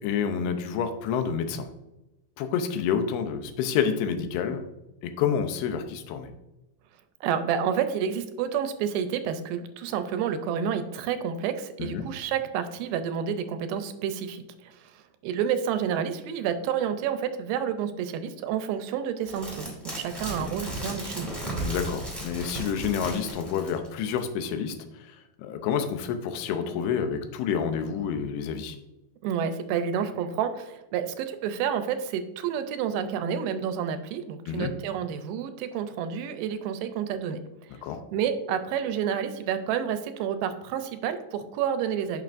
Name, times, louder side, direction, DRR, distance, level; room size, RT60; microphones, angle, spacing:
voice 1, 0.0-1.7 2.4-4.6 5.0-6.3 11.8-12.0 21.6-24.8 25.0-28.8 34.5-34.7 37.8-38.0, left 7 dB, 90° left, 8 dB, 2.7 m, -28 dB
voice 2, 7.2-21.3 29.2-37.8 38.1-42.2, right 8 dB, 80° right, 9 dB, 2.4 m, -29 dB
sound 1, 19.3-23.9 24.2-24.3, right 1 dB, ahead, 1.4 m, -35 dB
9.0 x 5.9 x 2.5 m, 0.96 s
omnidirectional pair, 4.5 m